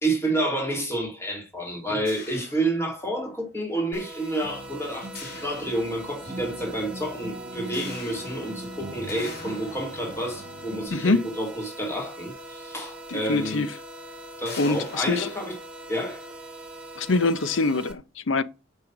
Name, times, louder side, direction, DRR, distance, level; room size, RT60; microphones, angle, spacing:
voice 1, 0.0-13.7 14.4-15.6 15.9-16.2, right 1 dB, 15° left, 2.2 m, -29 dB
sound 1, 2.1-3.4 5.2-6.4 7.7-12.2 13.1-13.2 13.6-13.8 14.5-16.4, left 4 dB, 55° left, 2.3 m, -45 dB
sound 2, 3.9-17.9, right 1 dB, 5° right, 1.7 m, -42 dB
sound 3, 4.4-10.9, right 2 dB, 40° right, 1.5 m, -41 dB
voice 2, 10.9-11.3 13.1-13.7 14.6-15.3 17.0-18.4, left 3 dB, 75° left, 0.7 m, -24 dB
6.0 x 5.6 x 7.0 m
head